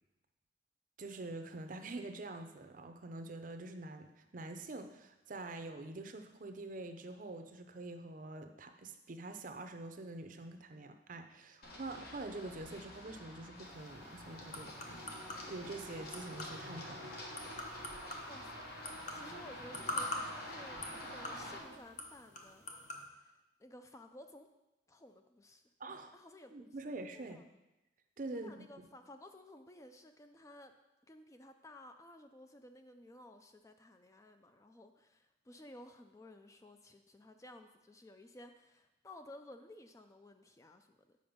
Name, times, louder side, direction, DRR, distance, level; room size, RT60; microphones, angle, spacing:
voice 1, 1.0-15.0 15.5-17.0 25.8-26.1 26.5-27.4 28.2-28.9, right 2 dB, 45° right, 7 dB, 0.6 m, -46 dB
Run, 11.6-21.6, left 1 dB, 60° left, 1.3 m, -48 dB
sound 1, 13.6-23.1, left 2 dB, 40° left, 0.9 m, -46 dB
sound 2, 14.2-21.8, right 2 dB, 80° right, 0.8 m, -55 dB
voice 2, 18.3-18.7 19.1-22.6 23.1-23.3 23.6-24.5 24.9-25.6 26.1-27.4 28.3-30.7 31.1-41.2, left 1 dB, 15° left, 7 dB, 0.4 m, -55 dB
7.8 x 5.2 x 5.1 m, 0.99 s
head